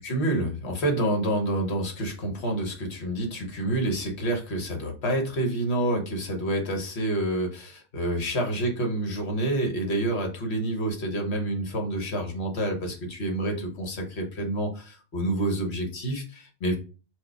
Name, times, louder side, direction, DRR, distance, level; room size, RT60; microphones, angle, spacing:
voice 1, 0.0-16.8, right 1 dB, 55° left, 3 dB, 1.2 m, -28 dB
4.7 x 2.3 x 4.4 m, 0.35 s
omnidirectional pair, 1.4 m